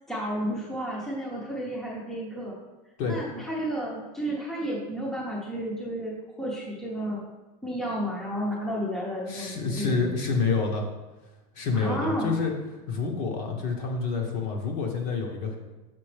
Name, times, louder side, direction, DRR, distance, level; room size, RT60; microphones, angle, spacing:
voice 1, 0.1-2.6 3.1-7.2 7.6-10.1 11.7-12.3, equal, ahead, -5 dB, 0.8 m, -32 dB
voice 2, 9.3-10.9 11.5-12.5 12.9-15.6, left 4 dB, 40° left, 2 dB, 1.0 m, -28 dB
6.7 x 6.0 x 3.3 m, 1.1 s
supercardioid pair, 180°, 20 cm